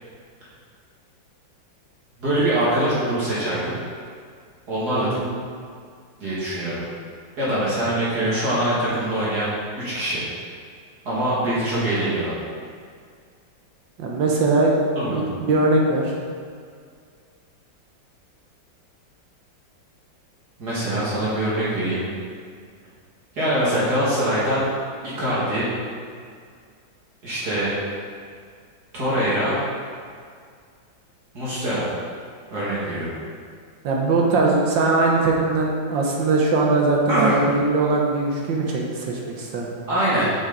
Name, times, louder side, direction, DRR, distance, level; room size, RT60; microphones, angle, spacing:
voice 1, 2.2-3.7 4.7-5.1 6.2-6.8 7.4-10.2 11.0-12.3 15.0-15.2 20.6-22.0 23.3-24.6 25.0-25.7 27.2-27.7 28.9-29.6 31.3-31.8 32.5-33.1 37.1-37.4 39.9-40.3, right 1 dB, 60° right, -10 dB, 2.6 m, -23 dB
voice 2, 5.0-5.3 14.0-14.8 15.1-16.2 33.8-39.7, right 3 dB, 75° right, -1 dB, 1.8 m, -21 dB
7.3 x 6.3 x 4.0 m, 2.1 s
omnidirectional pair, 2.0 m